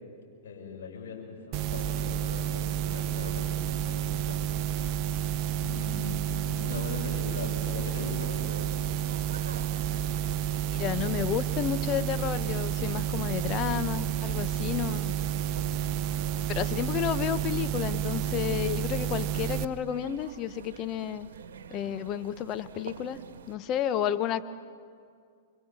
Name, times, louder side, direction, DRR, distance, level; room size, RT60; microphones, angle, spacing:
voice 1, 0.4-4.9 5.6-8.8, left 4 dB, 70° left, -3 dB, 6.3 m, -40 dB
sound 1, 1.5-19.6, right 10 dB, 45° right, 0.9 m, -30 dB
sound 2, 7.5-23.6, right 7 dB, 75° right, 1.6 m, -48 dB
voice 2, 10.7-15.1 16.1-21.3 21.7-23.2 23.5-24.4, left 10 dB, 40° left, 11 dB, 1.1 m, -31 dB
26.5 x 24.5 x 7.2 m, 2.2 s
hypercardioid pair, 110°, 0 cm